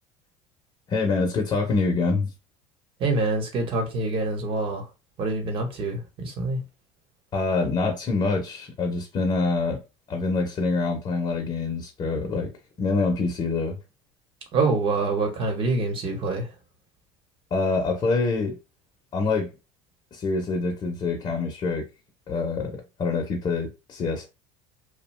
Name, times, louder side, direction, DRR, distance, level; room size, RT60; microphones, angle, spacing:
voice 1, 0.9-2.3 7.3-9.8 10.1-12.5 12.8-13.8 17.5-18.6 19.1-19.5 20.1-21.9 22.3-24.3, left 3 dB, 35° left, 0.8 m, -25 dB
voice 2, 3.0-4.9 5.2-6.6 14.5-16.5, right 3 dB, 40° right, 1.1 m, -26 dB
2.6 x 2.2 x 3.1 m
cardioid pair, 125°, 13 cm